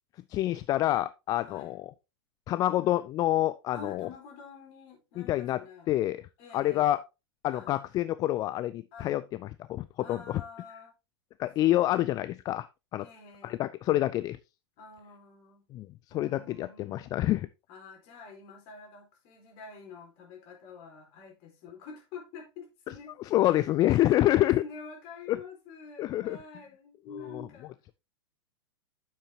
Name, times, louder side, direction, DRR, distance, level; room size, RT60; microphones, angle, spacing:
voice 1, 0.3-1.9 2.5-4.1 5.2-6.3 6.5-7.0 7.4-10.4 11.4-12.7 12.9-13.1 13.4-14.4 15.7-15.9 16.1-17.5 23.2-24.6 25.3-25.4 26.0-26.4 27.1-27.5, left 14 dB, 25° left, 0.4 m, -27 dB
voice 2, 1.4-1.8 2.5-3.0 3.7-5.9 6.4-6.9 7.5-7.7 8.9-9.2 10.0-10.9 11.6-11.8 13.0-13.7 14.8-15.6 16.1-17.1 17.7-23.1 23.5-27.7, left 5 dB, 45° left, 4.0 m, -48 dB
9.2 x 7.4 x 2.8 m
figure-of-eight pair, 100°, 14 cm